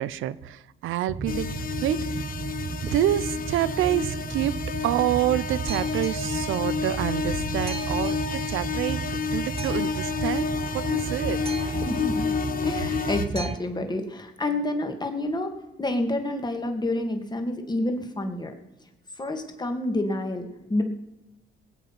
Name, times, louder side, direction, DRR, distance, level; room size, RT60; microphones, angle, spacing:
voice 1, 0.0-1.5 1.8-2.1 2.9-4.6 4.8-10.5 10.7-11.8, right 13 dB, 85° right, 18 dB, 0.7 m, -27 dB
Boat Water vehicle, 1.1-13.6, right 5 dB, 30° right, 0.8 m, -33 dB
sound 1, 1.3-13.3, left 6 dB, 45° left, 1.2 m, -30 dB
voice 2, 11.9-12.3 12.6-15.5 15.8-18.5 19.2-20.8, left 1 dB, 20° left, 5 dB, 2.4 m, -28 dB
19.5 x 8.4 x 6.0 m, 0.96 s
cardioid pair, 90°, 20 cm